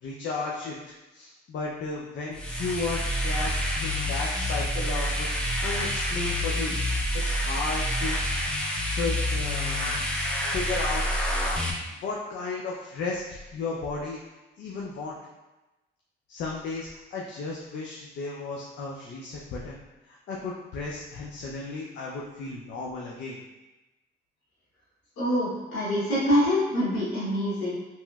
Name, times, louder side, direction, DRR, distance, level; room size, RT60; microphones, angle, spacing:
voice 1, 0.0-6.8 7.1-8.2 8.9-9.9 10.5-11.4 12.0-14.2 14.6-15.2 16.3-19.8 20.0-23.4, left 3 dB, 65° left, -3 dB, 0.5 m, -34 dB
sound 1, 2.3-11.7, equal, 5° left, 0.4 m, -28 dB
voice 2, 25.2-27.8, equal, 85° left, -9 dB, 1.0 m, -25 dB
3.0 x 2.9 x 2.2 m, 1.0 s
cardioid pair, 90°, 20 cm